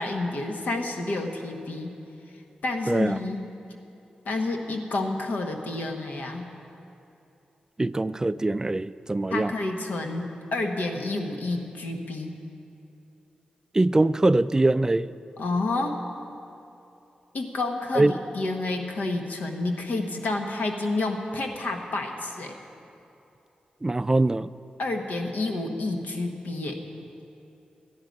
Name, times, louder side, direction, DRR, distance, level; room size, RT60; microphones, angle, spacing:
voice 1, 0.0-1.9 2.6-3.4 4.2-6.5 9.3-12.4 15.4-16.0 17.3-22.6 24.8-26.8, left 2 dB, 75° left, 3 dB, 1.2 m, -29 dB
voice 2, 2.9-3.2 7.8-9.5 13.7-15.1 17.9-18.1 23.8-24.5, right 2 dB, 20° right, 15 dB, 0.3 m, -22 dB
13.5 x 10.5 x 5.2 m, 2.7 s
cardioid pair, 55°, 3 cm